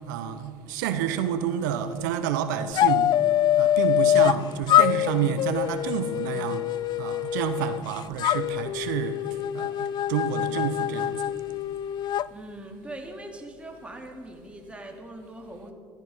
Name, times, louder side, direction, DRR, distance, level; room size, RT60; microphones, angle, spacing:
voice 1, 0.1-3.1 3.6-6.6 7.0-9.2 9.5-11.2, right 9 dB, 80° right, 9 dB, 0.9 m, -29 dB
sound 1, 2.7-4.4 4.7-7.8 8.2-12.3, left 11 dB, 45° left, 0.4 m, -24 dB
voice 2, 12.3-15.7, right 1 dB, 10° right, 2 dB, 3.0 m, -41 dB
14.5 x 14.5 x 5.6 m, 2.4 s
hypercardioid pair, 80°, 10 cm